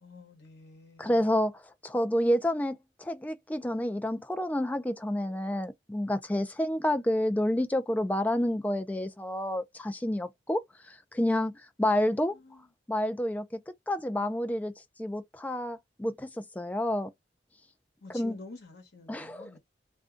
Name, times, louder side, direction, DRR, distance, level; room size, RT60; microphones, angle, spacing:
voice 1, 0.0-1.2 12.1-12.7 18.0-19.6, left 3 dB, 60° left, 1.0 m, -49 dB
voice 2, 1.0-10.6 10.9-12.3 12.9-13.5 13.9-14.7 15.0-17.1 18.1-18.4 19.1-19.6, left 1 dB, 10° left, 0.3 m, -29 dB
2.5 x 2.2 x 3.5 m
head